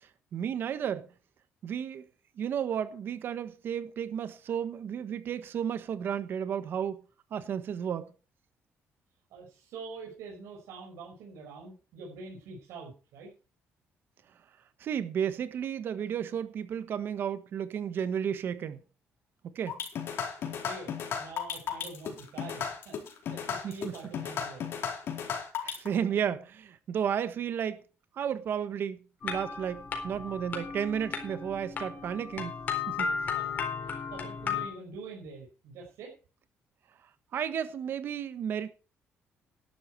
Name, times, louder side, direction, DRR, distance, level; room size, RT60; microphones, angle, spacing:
voice 1, 0.0-1.1 1.6-2.0 2.4-7.0 7.3-8.1 14.8-18.8 19.4-19.8 23.6-23.9 25.6-27.8 28.1-32.5 32.9-33.2 37.3-38.7, right 8 dB, 50° right, 1.4 m, -33 dB
voice 2, 9.3-13.3 20.4-24.7 33.3-33.5 33.8-36.1, right 4 dB, 90° right, 5.6 m, -45 dB
sound 1, 19.7-25.9, left 7 dB, 60° left, 4.3 m, -34 dB
sound 2, 29.2-34.7, left 6 dB, 40° left, 4.2 m, -35 dB
12.0 x 11.5 x 4.7 m
cardioid pair, 150°, 5 cm